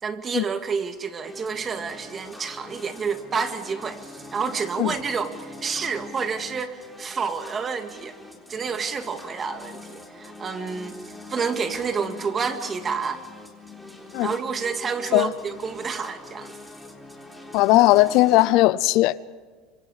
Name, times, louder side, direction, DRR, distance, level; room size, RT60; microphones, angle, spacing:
voice 1, 0.0-8.2 8.5-11.0 11.3-13.2 14.2-16.6, right 5 dB, 30° right, 2.1 m, -29 dB
sound 1, 1.2-18.6, left 2 dB, ahead, 3.7 m, -43 dB
voice 2, 17.5-19.2, left 18 dB, 60° left, 0.6 m, -18 dB
25.5 x 25.0 x 5.0 m
supercardioid pair, 115°, 0 cm